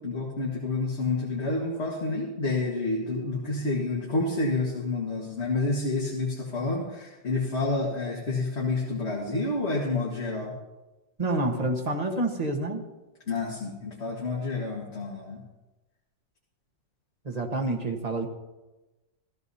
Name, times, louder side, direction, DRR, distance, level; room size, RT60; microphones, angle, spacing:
voice 1, 0.0-10.5 13.3-15.4, left 3 dB, 40° left, -3 dB, 1.8 m, -29 dB
voice 2, 11.2-12.8 17.2-18.3, right 2 dB, 25° right, 3 dB, 1.0 m, -28 dB
15.5 x 14.5 x 2.7 m, 1.1 s
omnidirectional pair, 1.9 m